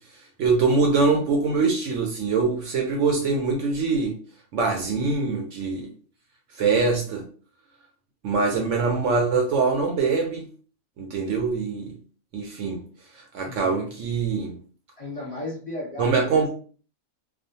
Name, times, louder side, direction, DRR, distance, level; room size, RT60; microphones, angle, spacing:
voice 1, 0.4-4.2 4.5-5.9 6.6-7.2 8.2-10.5 11.0-11.9 12.3-12.8 13.3-14.5 16.0-16.5, right 4 dB, 70° right, 2 dB, 0.8 m, -23 dB
voice 2, 8.5-8.9 13.4-13.9 15.0-16.5, left 1 dB, 30° left, -6 dB, 0.9 m, -36 dB
2.5 x 2.1 x 2.7 m, 0.41 s
omnidirectional pair, 1.5 m